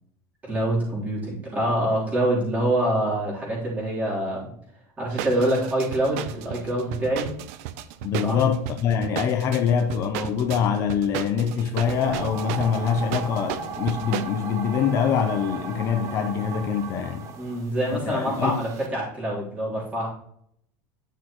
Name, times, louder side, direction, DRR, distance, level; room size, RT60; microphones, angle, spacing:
voice 1, 0.4-4.5 5.0-7.3 8.2-8.4 17.3-20.1, right 1 dB, 20° right, 3.5 m, -25 dB
sound 1, 5.1-14.3, right 11 dB, 70° right, 0.6 m, -34 dB
voice 2, 8.0-17.3 17.9-18.6, left 7 dB, 35° left, 0.6 m, -24 dB
sound 2, 11.7-18.9, right 5 dB, 40° right, 0.9 m, -36 dB
9.9 x 6.2 x 3.0 m
supercardioid pair, 155°, 8 cm